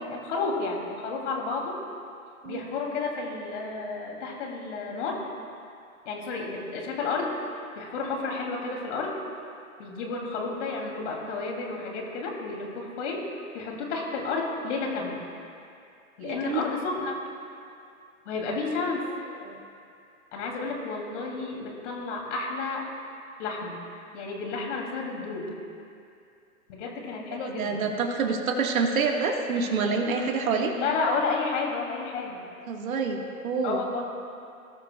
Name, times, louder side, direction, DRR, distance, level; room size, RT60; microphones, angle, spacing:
voice 1, 0.0-1.8 2.4-5.2 6.0-7.4 7.8-9.1 9.8-13.3 13.5-15.2 16.2-17.2 18.2-19.1 20.3-22.9 23.4-23.8 24.1-25.5 26.7-27.9 30.7-32.4 33.6-34.1, left 4 dB, 55° left, 0 dB, 2.8 m, -31 dB
voice 2, 16.2-16.6 19.4-19.6 27.3-30.7 32.7-33.2 33.4-33.8, right 5 dB, 70° right, 2 dB, 1.7 m, -27 dB
20.0 x 13.0 x 2.3 m, 2.5 s
hypercardioid pair, 125°, 42 cm